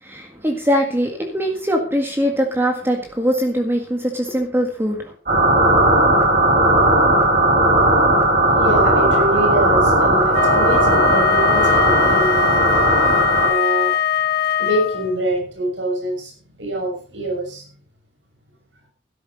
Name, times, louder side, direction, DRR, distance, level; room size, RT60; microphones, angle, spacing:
voice 1, 0.0-5.1, equal, 15° right, 2 dB, 1.9 m, -21 dB
sound 1, 5.3-13.5, right 1 dB, 50° right, 5.0 m, -16 dB
voice 2, 8.6-12.6 13.4-13.9 14.6-17.6, right 1 dB, 90° right, 1 dB, 6.3 m, -24 dB
Wind instrument woodwind instrument, 10.3-15.2, left 9 dB, 55° left, 1.2 m, -21 dB
12.5 x 12.0 x 5.1 m, 0.41 s
head